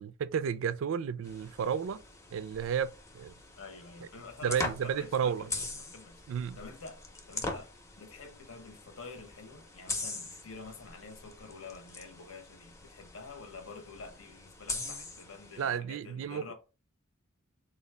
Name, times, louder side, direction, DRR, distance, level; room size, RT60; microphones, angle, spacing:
voice 1, 0.0-2.0 2.3-3.3 4.4-5.5 6.3-6.6 15.6-16.4, right 7 dB, 75° right, 0.3 m, -32 dB
sound 1, 1.2-15.8, left 2 dB, 15° left, 0.5 m, -42 dB
voice 2, 3.6-16.5, left 4 dB, 85° left, 0.9 m, -48 dB
3.8 x 2.3 x 3.3 m
head